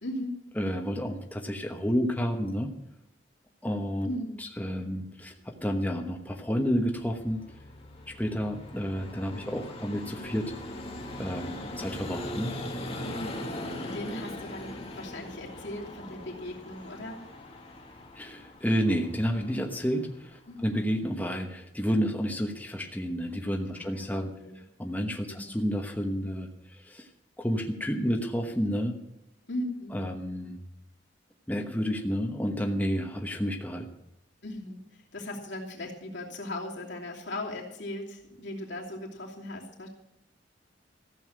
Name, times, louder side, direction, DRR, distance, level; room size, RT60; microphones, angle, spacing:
voice 1, 0.0-0.4 4.0-4.4 13.0-17.2 20.5-20.8 23.7-24.6 25.3-25.4 29.5-30.0 34.4-39.9, left 1 dB, 80° left, -2 dB, 2.9 m, -38 dB
voice 2, 0.6-2.7 3.6-4.1 4.4-7.4 8.1-10.5 11.2-12.5 18.1-24.3 24.8-27.1 27.4-29.0 29.9-30.6 31.5-33.9, equal, 10° left, 2 dB, 1.1 m, -30 dB
Vehicle, 6.2-20.9, left 1 dB, 35° left, 2.0 m, -41 dB
14.5 x 7.1 x 8.8 m, 0.84 s
head